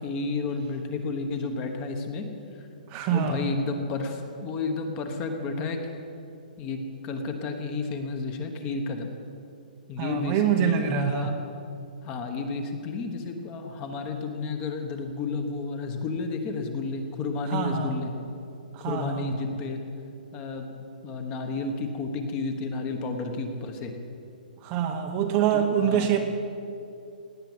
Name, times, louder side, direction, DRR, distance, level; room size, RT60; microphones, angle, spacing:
voice 1, 0.0-2.3 2.6-2.7 3.1-6.1 6.6-9.1 9.9-11.3 12.0-18.1 18.8-19.8 20.3-20.7 21.0-23.9 25.5-26.1, left 3 dB, 20° left, 5 dB, 1.2 m, -31 dB
voice 2, 2.9-3.5 10.0-11.3 17.5-18.0 18.7-19.3 24.6-26.2, right 9 dB, 20° right, 4 dB, 0.9 m, -25 dB
18.0 x 9.9 x 8.0 m, 2.6 s
hypercardioid pair, 175°, 5 cm